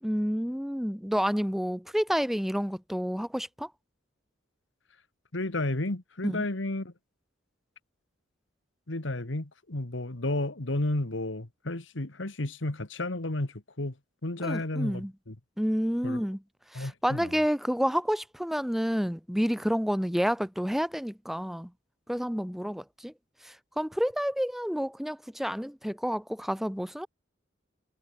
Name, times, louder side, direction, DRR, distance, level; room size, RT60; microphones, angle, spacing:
voice 1, 0.0-3.7 6.2-6.4 14.4-15.1 15.6-16.4 16.7-21.7 22.1-23.1 23.4-27.1, equal, ahead, 0.7 m, -29 dB
voice 2, 5.3-6.9 8.9-13.9 14.2-15.4 16.0-16.2 16.7-17.3, left 2 dB, 70° left, 1.9 m, -32 dB
head